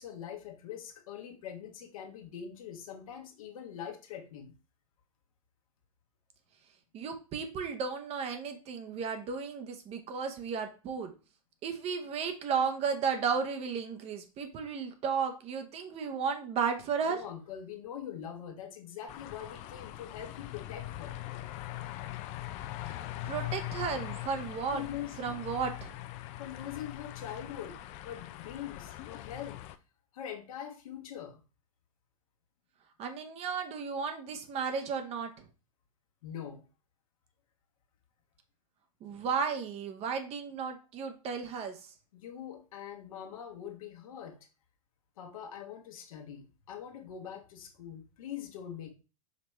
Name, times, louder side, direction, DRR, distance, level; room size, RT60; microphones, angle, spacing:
voice 1, 0.0-4.5 17.1-21.2 24.7-25.4 26.4-29.6 30.1-31.4 36.2-36.6 42.1-44.4 45.2-48.9, left 9 dB, 70° left, 2 dB, 1.1 m, -43 dB
voice 2, 6.9-11.1 11.6-17.2 23.2-24.8 25.2-25.9 33.0-35.4 39.0-41.8, right 6 dB, 35° right, 7 dB, 0.8 m, -34 dB
sound 1, 19.1-29.8, left 14 dB, 40° left, 0.4 m, -41 dB
5.2 x 3.2 x 3.0 m, 0.32 s
hypercardioid pair, 105°, 18 cm